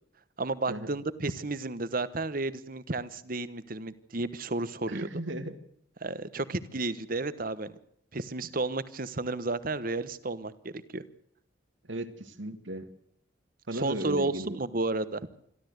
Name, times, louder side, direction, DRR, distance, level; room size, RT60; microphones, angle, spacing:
voice 1, 0.4-5.1 6.0-7.7 8.1-11.0 13.7-15.2, right 2 dB, 50° right, 15 dB, 1.2 m, -32 dB
voice 2, 4.9-5.6 11.9-12.9 13.7-14.6, right 1 dB, 85° right, 10 dB, 2.1 m, -36 dB
26.0 x 13.0 x 8.1 m, 0.70 s
head